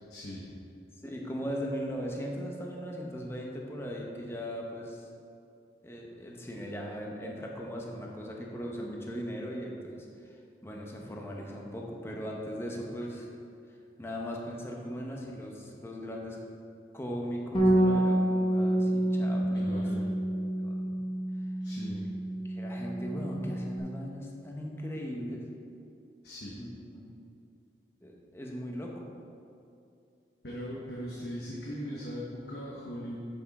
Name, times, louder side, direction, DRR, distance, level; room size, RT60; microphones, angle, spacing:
voice 1, 0.1-0.5 19.5-20.0 21.6-22.0 26.2-26.6 30.4-33.2, equal, 70° left, -6 dB, 1.3 m, -39 dB
voice 2, 1.0-5.0 5.8-10.3 10.6-13.3 14.0-16.4 16.9-19.9 20.6-20.9 22.0-22.1 22.4-25.4 26.5-27.1 28.0-29.1, equal, 15° left, -1 dB, 0.9 m, -38 dB
Bass guitar, 17.5-23.8, right 1 dB, 30° left, 1.4 m, -28 dB
8.2 x 7.0 x 4.2 m, 2.6 s
head